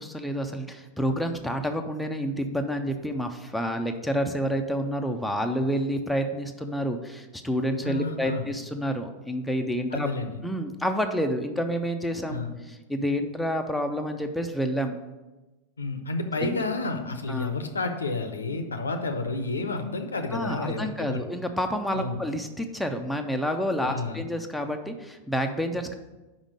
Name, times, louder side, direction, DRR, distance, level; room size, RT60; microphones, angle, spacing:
voice 1, 0.0-10.1 10.4-14.9 16.4-16.6 17.3-17.5 20.3-26.0, equal, ahead, 4 dB, 0.6 m, -29 dB
voice 2, 7.8-8.4 9.9-10.4 12.3-12.5 15.8-21.2 21.9-22.2 23.9-24.2, left 3 dB, 75° left, 7 dB, 0.7 m, -30 dB
5.3 x 5.1 x 6.3 m, 1.1 s
figure-of-eight pair, 90°, 0 cm